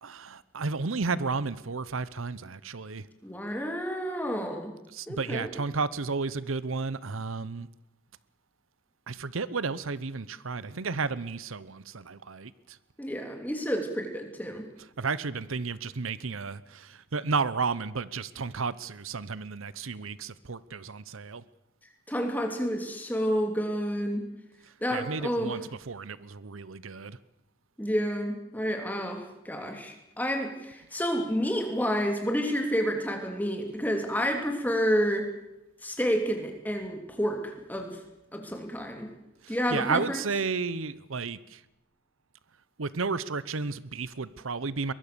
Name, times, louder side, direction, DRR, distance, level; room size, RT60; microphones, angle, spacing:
voice 1, 0.0-3.1 4.9-7.7 9.1-12.8 15.0-21.4 24.9-27.2 39.4-41.6 42.8-44.9, right 4 dB, 90° right, 18 dB, 0.9 m, -32 dB
voice 2, 3.2-4.7 5.1-5.5 13.0-14.7 22.1-24.3 24.8-25.5 27.8-35.3 35.8-38.0 38.3-39.1 39.5-40.2, equal, 10° left, 4 dB, 3.0 m, -29 dB
23.0 x 21.5 x 6.9 m, 0.91 s
head